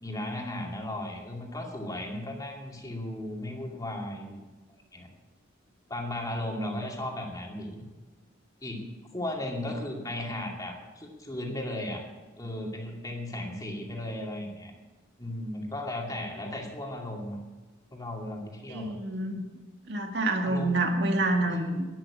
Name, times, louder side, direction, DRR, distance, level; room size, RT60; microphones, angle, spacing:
voice 1, 0.0-4.4 4.9-5.1 5.9-7.8 8.6-8.8 9.1-12.0 12.4-14.7 15.2-17.4 17.9-18.9 20.4-20.8 21.5-21.8, left 1 dB, 20° left, 0 dB, 2.5 m, -36 dB
voice 2, 18.7-19.4 19.9-21.9, right 2 dB, 55° right, 4 dB, 2.0 m, -27 dB
11.5 x 10.5 x 8.6 m, 1.2 s
head